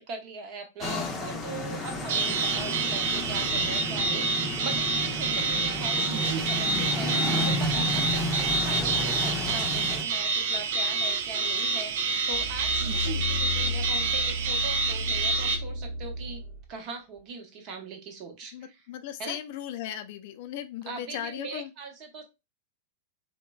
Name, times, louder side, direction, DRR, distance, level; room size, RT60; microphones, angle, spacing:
voice 1, 0.0-16.4 16.7-18.9 19.2-19.4 20.9-22.2, right 3 dB, 45° right, 0.9 m, -40 dB
sound 1, 0.8-10.0, left 1 dB, 25° left, 0.6 m, -32 dB
sound 2, 2.1-15.6, right 4 dB, 60° right, 0.4 m, -28 dB
voice 2, 7.7-8.1 18.5-21.7, left 11 dB, 55° left, 0.3 m, -37 dB
sound 3, 12.3-16.7 17.2-17.3, left 1 dB, 10° left, 1.3 m, -33 dB
3.1 x 2.1 x 2.2 m
hypercardioid pair, 100°, 0 cm